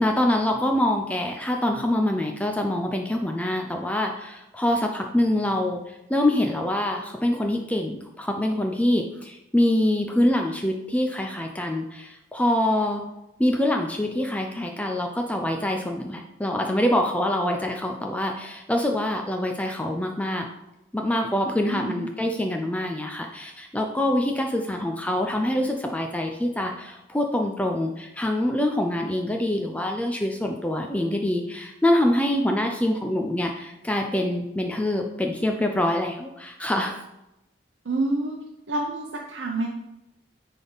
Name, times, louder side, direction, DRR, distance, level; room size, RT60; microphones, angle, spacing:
voice 1, 0.0-13.0 13.4-20.5 20.9-37.0, left 1 dB, 10° left, 3 dB, 0.4 m, -25 dB
voice 2, 21.6-22.1 37.8-38.4 38.7-39.7, right 2 dB, 80° right, -1 dB, 0.8 m, -28 dB
9.7 x 3.6 x 3.9 m, 0.90 s
head